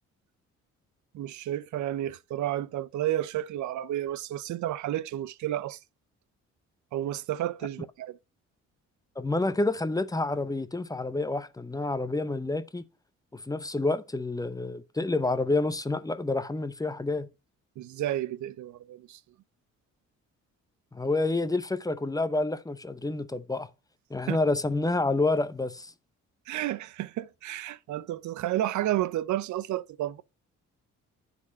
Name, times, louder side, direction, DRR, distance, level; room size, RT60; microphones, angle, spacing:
voice 1, 1.1-5.8 6.9-8.2 17.8-19.2 24.3-24.4 26.5-30.2, right 13 dB, 70° right, 0.6 m, -31 dB
voice 2, 9.2-12.8 13.3-17.3 20.9-23.7 24.1-25.9, left 2 dB, 10° left, 0.8 m, -28 dB
10.0 x 4.2 x 5.4 m
cardioid pair, 90°, 30 cm